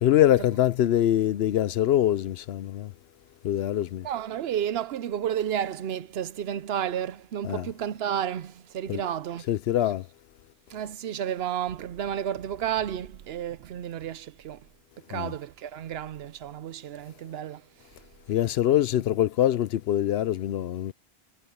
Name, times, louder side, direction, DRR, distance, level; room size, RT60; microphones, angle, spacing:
voice 1, 0.0-2.9 3.4-4.1 7.4-7.7 8.9-9.0 9.5-10.1 15.1-15.3 18.3-20.9, left 12 dB, 75° left, 0.8 m, -24 dB
voice 2, 4.0-9.5 9.8-9.9 10.7-14.7 15.1-17.7, right 10 dB, 75° right, 0.8 m, -32 dB
omnidirectional pair, 1.1 m